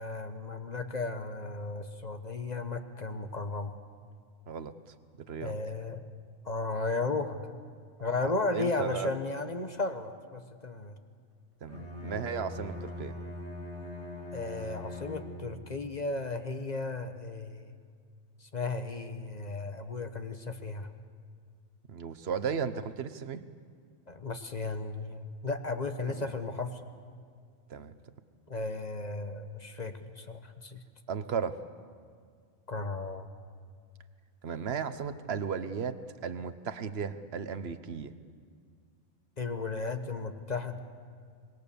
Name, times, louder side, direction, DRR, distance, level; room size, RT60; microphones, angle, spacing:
voice 1, 0.0-3.7 5.4-6.0 6.4-7.4 8.0-11.0 14.3-17.7 18.4-20.9 24.1-26.8 28.5-30.8 32.7-33.3 39.4-40.8, left 3 dB, 35° left, 7 dB, 1.2 m, -35 dB
voice 2, 8.2-9.1 11.6-13.1 21.9-23.4 26.1-26.3 27.7-27.9 31.1-31.6 34.4-38.1, right 6 dB, 55° right, 11 dB, 1.2 m, -35 dB
Bowed string instrument, 11.6-15.7, left 1 dB, 70° left, 3.3 m, -41 dB
26.0 x 22.5 x 7.0 m, 2.1 s
omnidirectional pair, 1.3 m